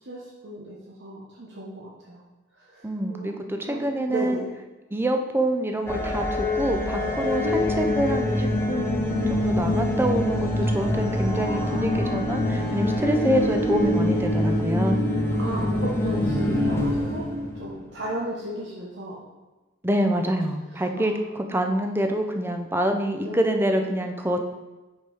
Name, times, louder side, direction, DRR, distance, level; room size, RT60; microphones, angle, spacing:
voice 1, 0.0-2.2 2.6-4.5 7.3-7.7 11.3-12.3 13.1-13.8 15.4-17.2 17.5-19.2 20.9-21.6 23.2-23.9, right 1 dB, 65° right, -4 dB, 0.9 m, -35 dB
voice 2, 2.8-4.4 4.9-15.0 19.8-24.5, equal, 10° right, 5 dB, 0.5 m, -26 dB
sound 1, 5.9-17.9, left 1 dB, 15° left, 0.9 m, -25 dB
5.7 x 4.5 x 4.8 m, 1.1 s
head